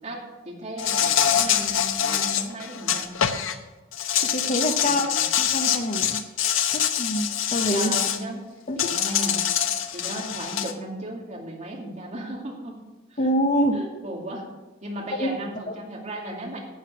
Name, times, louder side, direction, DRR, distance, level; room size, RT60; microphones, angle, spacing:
voice 1, 0.0-3.1 4.8-5.3 7.7-8.5 8.7-12.8 13.1-13.3 13.7-14.5 14.8-16.6, right 1 dB, 35° right, -1 dB, 2.5 m, -35 dB
Insect, 0.8-3.5 3.9-8.2 8.8-10.7, left 9 dB, 80° left, 0.9 m, -24 dB
voice 2, 4.2-6.2 6.7-7.9 8.7-8.9 13.2-13.8 15.2-15.3, equal, 35° left, 6 dB, 0.7 m, -26 dB
12.0 x 7.7 x 5.9 m, 1.2 s
head